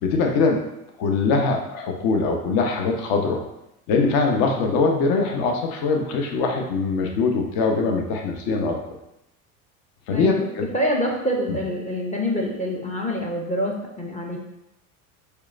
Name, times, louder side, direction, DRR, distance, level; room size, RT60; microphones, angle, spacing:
voice 1, 0.0-0.6 1.0-3.4 3.9-8.8 10.1-10.6 11.5-11.6, left 4 dB, 60° left, 2 dB, 0.7 m, -22 dB
voice 2, 10.1-10.5 10.7-14.4, equal, 15° left, -1 dB, 0.5 m, -26 dB
4.5 x 2.2 x 2.4 m, 0.86 s
hypercardioid pair, 85°, 43 cm